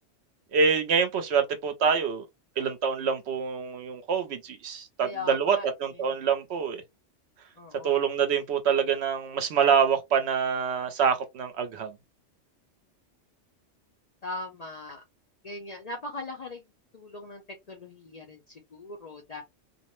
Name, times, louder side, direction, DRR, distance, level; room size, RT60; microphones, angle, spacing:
voice 1, 0.5-2.3 2.6-6.8 7.8-11.9, right 6 dB, 70° right, 0.8 m, -26 dB
voice 2, 5.0-6.1 7.6-8.1 14.2-15.0 15.4-16.7 16.9-19.4, left 2 dB, 50° left, 0.5 m, -40 dB
2.5 x 2.0 x 2.9 m
omnidirectional pair, 1.2 m